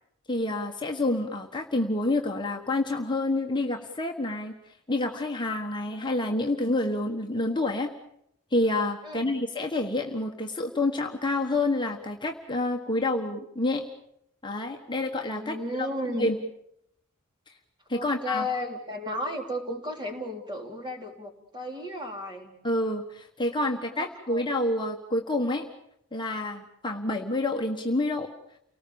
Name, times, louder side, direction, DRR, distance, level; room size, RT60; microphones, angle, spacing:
voice 1, 0.3-7.9 8.5-13.9 14.4-15.9 16.2-16.4 17.9-18.5 22.6-25.6 26.1-28.3, left 2 dB, 20° left, 2 dB, 1.4 m, -28 dB
voice 2, 9.0-9.3 15.3-16.3 17.9-22.5 24.0-24.4, left 1 dB, 20° right, 3 dB, 3.7 m, -34 dB
29.5 x 19.0 x 7.1 m, 0.77 s
head